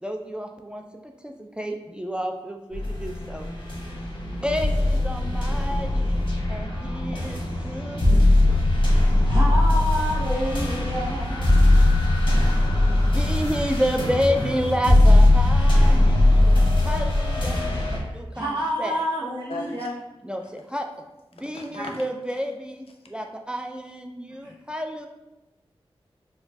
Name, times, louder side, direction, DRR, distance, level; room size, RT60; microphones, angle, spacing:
voice 1, 0.0-3.5 4.4-6.2 6.5-8.1 13.0-16.6 16.8-17.6 17.9-18.5 18.8-19.0 20.2-20.9 21.3-25.1, equal, 10° right, 3 dB, 0.3 m, -30 dB
sound 1, 2.7-18.0, left 1 dB, 55° left, 0.9 m, -20 dB
voice 2, 9.2-11.4 18.3-19.9 21.7-21.9 24.4-24.5, equal, 50° right, -7 dB, 0.8 m, -28 dB
voice 3, 19.5-19.9 21.5-22.0, left 2 dB, 70° left, 1 dB, 0.5 m, -36 dB
4.4 x 2.2 x 2.6 m, 1.0 s
cardioid pair, 45°, 10 cm